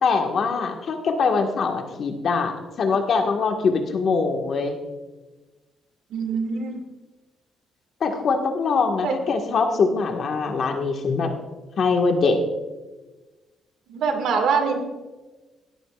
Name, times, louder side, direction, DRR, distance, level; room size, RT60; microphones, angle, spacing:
voice 1, 0.0-4.8 8.0-11.3 11.8-12.4, left 4 dB, 60° left, 3 dB, 1.7 m, -23 dB
voice 2, 6.1-6.8 9.0-9.2 13.9-14.8, right 5 dB, 80° right, 5 dB, 2.0 m, -24 dB
18.0 x 14.0 x 2.5 m, 1.2 s
cardioid pair, 90°, 0 cm